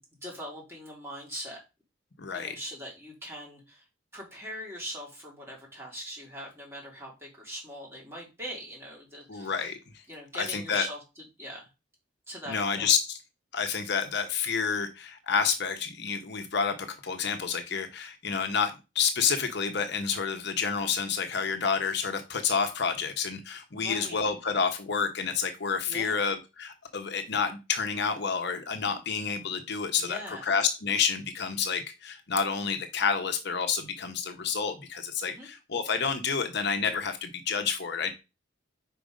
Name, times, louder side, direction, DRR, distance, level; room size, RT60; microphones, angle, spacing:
voice 1, 0.2-1.6 2.3-3.8 4.1-9.7 10.1-11.7 12.3-12.9 23.7-24.2 25.9-26.2 29.9-30.5 35.2-35.5, equal, 15° right, -3 dB, 2.7 m, -41 dB
voice 2, 2.2-2.5 9.3-9.8 10.4-10.9 12.5-13.2 13.5-38.1, left 6 dB, 55° left, 6 dB, 0.8 m, -29 dB
5.0 x 4.6 x 5.1 m, 0.26 s
head